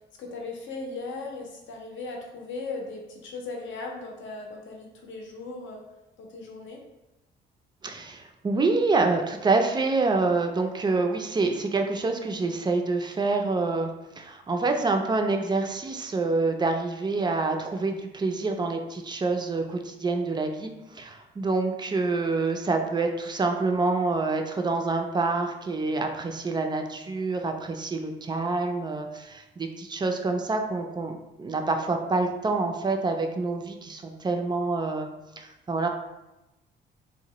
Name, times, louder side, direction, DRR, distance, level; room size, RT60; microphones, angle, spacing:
voice 1, 0.2-5.8 6.2-6.8, left 3 dB, 75° left, 1 dB, 0.6 m, -37 dB
voice 2, 7.8-35.1 35.4-35.9, right 3 dB, 20° right, 4 dB, 0.3 m, -27 dB
2.8 x 2.0 x 2.9 m, 0.96 s
cardioid pair, 90°, 20 cm